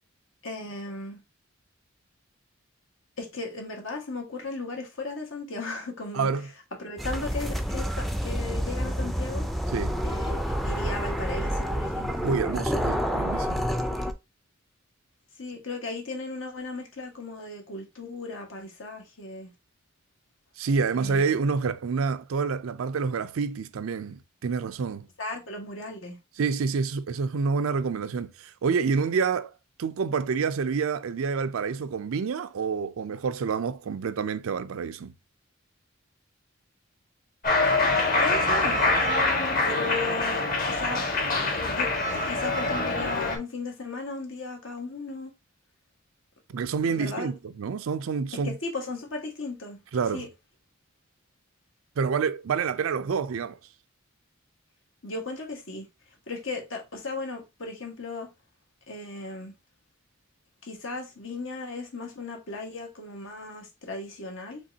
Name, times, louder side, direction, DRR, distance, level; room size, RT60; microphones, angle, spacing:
voice 1, 0.4-1.2 3.2-6.3 6.8-9.5 10.0-12.4 13.9-14.1 15.4-19.5 21.0-21.2 25.2-26.2 38.2-39.0 39.6-41.1 41.7-41.9 42.2-45.3 46.8-47.3 48.4-49.8 50.1-50.3 55.0-55.9 56.3-58.3 58.9-59.5 60.6-64.6, left 3 dB, 70° left, 1.5 m, -36 dB
voice 2, 6.1-6.5 9.7-10.0 12.2-13.7 20.6-25.1 26.4-29.5 29.8-35.1 46.5-48.6 49.9-50.3 52.0-53.6, right 5 dB, 85° right, 0.4 m, -28 dB
sound 1, 7.0-14.1, equal, ahead, 0.4 m, -28 dB
Cheering, 37.4-43.4, left 2 dB, 45° left, 1.5 m, -25 dB
5.2 x 3.6 x 2.7 m
head